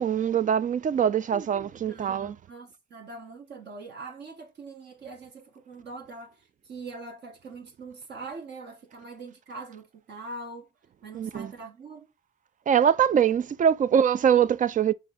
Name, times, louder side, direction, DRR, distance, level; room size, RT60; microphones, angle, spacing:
voice 1, 0.0-2.4 11.1-11.5 12.7-14.9, right 8 dB, 40° right, 0.4 m, -23 dB
voice 2, 1.9-10.7 11.0-12.1, right 3 dB, 60° right, 1.3 m, -42 dB
5.5 x 3.5 x 2.6 m
cardioid pair, 90°, 20 cm